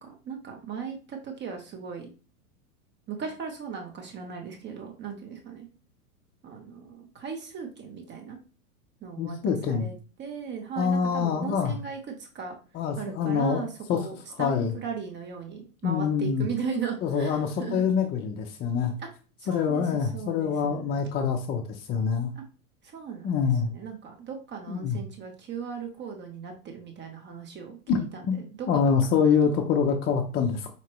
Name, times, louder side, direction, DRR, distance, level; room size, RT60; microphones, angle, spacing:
voice 1, 0.0-2.1 3.1-5.7 6.4-8.4 9.0-12.5 13.0-17.9 19.0-19.1 19.5-20.9 22.3-22.4 22.9-28.2 28.5-28.9 29.2-29.3, right 6 dB, 25° right, 3 dB, 0.9 m, -37 dB
voice 2, 9.2-9.9 10.8-11.8 12.7-14.1 14.4-14.7 15.8-16.5 17.0-18.9 19.5-22.3 23.2-23.7 24.7-25.0 27.9-30.7, left 6 dB, 25° left, 4 dB, 0.5 m, -25 dB
5.5 x 3.0 x 3.0 m, 0.35 s
hypercardioid pair, 115°, 44 cm